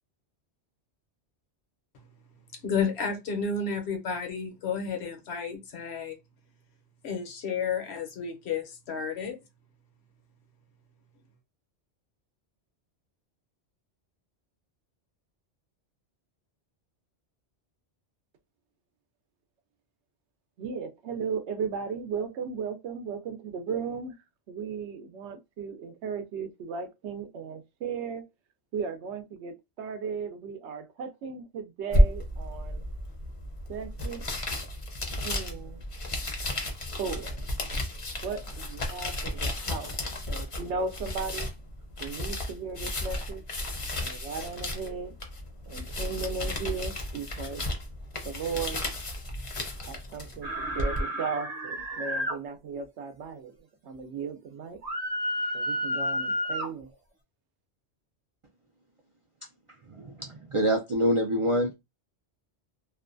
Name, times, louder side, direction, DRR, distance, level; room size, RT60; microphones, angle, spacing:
voice 1, 2.5-6.2 7.0-9.4, left 5 dB, 70° left, 1.0 m, -31 dB
voice 2, 20.6-24.2 24.5-28.2 28.7-32.8 33.7-34.2 35.2-35.8 37.0-37.5 38.2-39.9 40.3-41.5 42.0-43.4 44.0-45.1 45.7-47.6 48.2-48.9 49.8-54.8 55.5-57.0, right 5 dB, 80° right, 0.8 m, -36 dB
sound 1, 31.9-51.0, left 1 dB, 40° left, 0.5 m, -32 dB
sound 2, 50.4-52.3 54.8-56.7, equal, 40° right, 0.7 m, -31 dB
voice 3, 59.9-61.7, equal, 55° right, 0.3 m, -26 dB
2.6 x 2.2 x 2.5 m
omnidirectional pair, 1.1 m